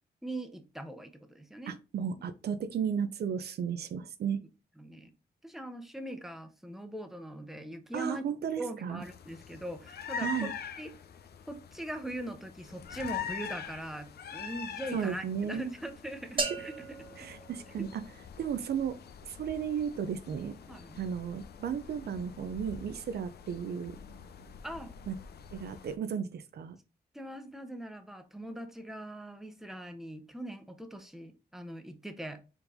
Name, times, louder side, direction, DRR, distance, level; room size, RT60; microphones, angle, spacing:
voice 1, 0.2-1.7 4.8-5.1 5.4-8.2 8.6-10.5 10.8-10.9 11.5-16.7 20.7-21.0 24.6-24.9 27.1-32.4, right 1 dB, ahead, 0.9 m, -41 dB
voice 2, 1.7-4.4 7.9-9.0 10.2-10.5 14.9-15.7 17.2-18.0 18.4-19.0 19.2-20.6 21.0-24.0 25.1-25.2 25.5-26.8, right 7 dB, 75° right, 0.5 m, -34 dB
sound 1, 9.0-26.0, left 7 dB, 75° left, 0.6 m, -44 dB
sound 2, 16.4-18.4, right 3 dB, 30° right, 0.9 m, -37 dB
4.6 x 3.9 x 2.6 m
cardioid pair, 80°, 17 cm